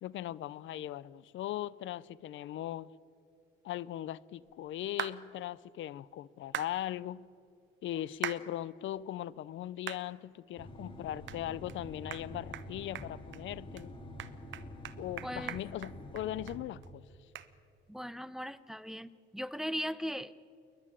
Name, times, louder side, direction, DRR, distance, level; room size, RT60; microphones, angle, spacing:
voice 1, 0.0-2.9 3.6-7.3 7.8-13.9 15.0-17.0, left 13 dB, 75° left, 0.6 m, -39 dB
sound 1, 5.0-5.2 6.5-6.7 8.2-8.4 9.0-9.1 9.9-10.0 10.5-10.6 11.3-11.4 11.7-11.8 12.1-12.3 12.5-12.7 13.0-13.4 13.8-13.9 14.2-16.6 16.8-16.9 17.4-17.5, right 11 dB, 70° right, 1.1 m, -39 dB
sound 2, 10.6-16.6, equal, 25° left, 4.4 m, -47 dB
voice 2, 15.2-15.6 17.9-20.3, equal, ahead, 0.7 m, -38 dB
27.5 x 11.5 x 9.9 m
cardioid pair, 90°, 20 cm